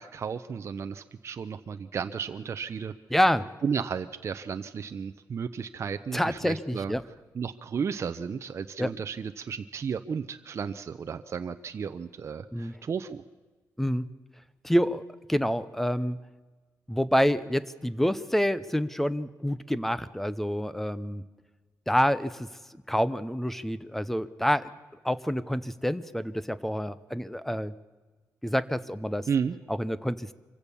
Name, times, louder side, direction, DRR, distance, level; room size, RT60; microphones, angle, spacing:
voice 1, 0.0-2.9 3.6-6.9 7.3-13.2 29.3-29.6, right 6 dB, 45° right, 8 dB, 0.6 m, -33 dB
voice 2, 3.1-3.5 6.1-7.0 8.8-8.9 12.5-12.8 13.8-14.0 14.6-15.0 15.3-16.2 16.9-21.2 21.9-22.5 22.9-24.7 25.0-27.7 28.4-29.3 29.7-30.3, equal, 5° left, 16 dB, 0.7 m, -27 dB
25.0 x 15.5 x 7.0 m, 1.3 s
wide cardioid pair, 130°, 6 cm